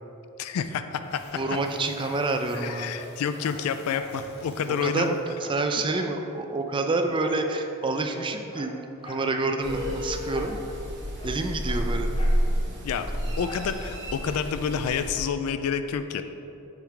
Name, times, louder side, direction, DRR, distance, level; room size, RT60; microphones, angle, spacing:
voice 1, 0.4-1.2 2.5-5.2 12.8-13.1 13.4-16.2, left 6 dB, 70° left, 9 dB, 0.3 m, -29 dB
sound 1, 0.9-5.3, left 2 dB, 50° left, 1.1 m, -49 dB
Dog, 1.0-2.3 2.6-2.7 2.9-4.2 4.5-4.6 4.9-6.2 7.2-7.5 8.0-9.3 10.3-10.6 10.9-12.4 13.4-13.7 14.2-14.3, left 1 dB, 25° left, 0.7 m, -45 dB
voice 2, 1.3-2.9 4.8-8.7 9.0-10.6 11.2-12.1 13.3-13.4, right 3 dB, 20° right, 5 dB, 0.4 m, -28 dB
sound 2, 9.6-15.2, equal, 55° right, 1.1 m, -30 dB
7.2 x 4.5 x 3.9 m, 2.9 s
head